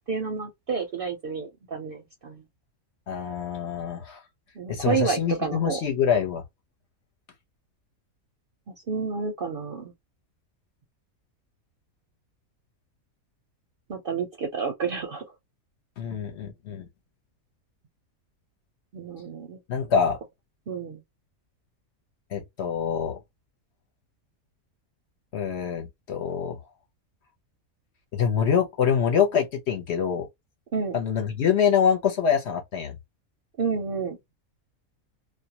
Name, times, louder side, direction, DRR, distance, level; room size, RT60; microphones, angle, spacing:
voice 1, 0.0-2.4 4.6-5.8 8.7-9.9 13.9-15.3 18.9-19.6 20.7-21.0 30.7-31.0 33.6-34.2, right 5 dB, 55° right, 0.6 m, -30 dB
voice 2, 3.1-4.2 4.7-6.4 16.0-16.9 19.7-20.2 22.3-23.2 25.3-26.6 28.1-30.3 30.9-33.0, left 7 dB, 60° left, 0.9 m, -25 dB
2.4 x 2.1 x 2.8 m
omnidirectional pair, 1.5 m